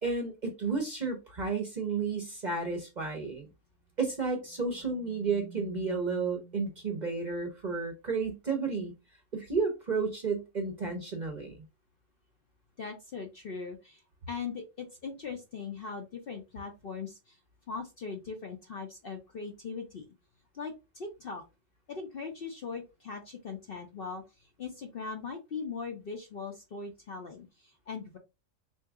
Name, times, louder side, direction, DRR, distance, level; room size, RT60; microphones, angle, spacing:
voice 1, 0.0-3.5 4.0-8.9 9.3-11.6, right 4 dB, 40° right, 0.7 m, -32 dB
sound 1, 4.4-6.9, right 4 dB, 5° right, 0.6 m, -49 dB
voice 2, 12.8-14.0 14.3-17.4 17.7-20.1 20.5-21.4 21.9-28.2, left 5 dB, 55° left, 0.7 m, -40 dB
3.9 x 2.7 x 3.4 m
omnidirectional pair, 1.5 m